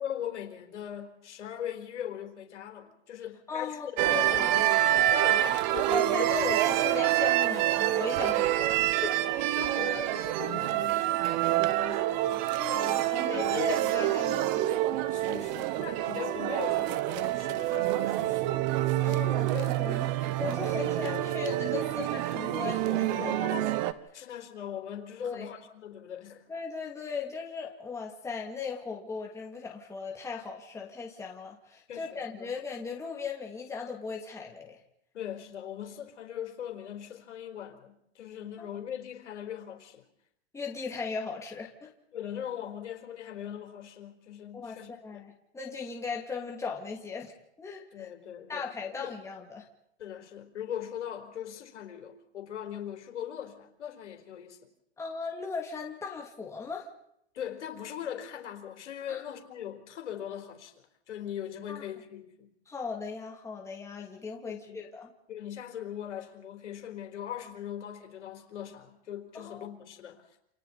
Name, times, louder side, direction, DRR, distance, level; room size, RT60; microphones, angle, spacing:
voice 1, 0.0-6.2 9.5-14.5 15.1-18.6 23.1-23.8 24.1-26.4 31.9-32.5 35.1-40.0 42.1-45.3 47.9-48.6 48.9-49.1 50.0-54.6 57.3-60.7 61.1-62.5 64.4-64.8 65.3-70.2, left 10 dB, 85° left, 4.2 m, -40 dB
voice 2, 3.5-4.6 5.9-9.2 12.6-14.7 19.0-23.7 24.2-24.3 25.2-25.5 26.5-34.8 38.6-38.7 40.5-41.9 44.5-47.3 47.6-48.1 48.5-49.7 55.0-56.9 59.1-59.2 61.7-61.8 62.7-65.1 69.3-69.7, left 5 dB, 10° left, 2.5 m, -37 dB
sound 1, 4.0-23.9, right 14 dB, 40° right, 1.2 m, -27 dB
29.0 x 28.0 x 4.3 m
supercardioid pair, 150°, 34 cm